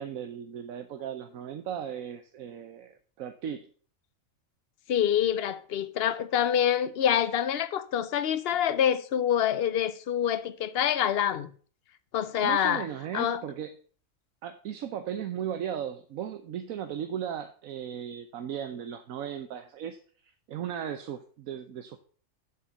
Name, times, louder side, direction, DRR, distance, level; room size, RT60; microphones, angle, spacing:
voice 1, 0.0-3.7 12.4-13.7 14.4-20.0 20.2-22.0, right 9 dB, 80° right, 1.2 m, -36 dB
voice 2, 4.9-11.5 12.1-12.8 13.1-13.4, left 9 dB, 55° left, 0.9 m, -26 dB
7.5 x 6.6 x 6.7 m
omnidirectional pair, 1.4 m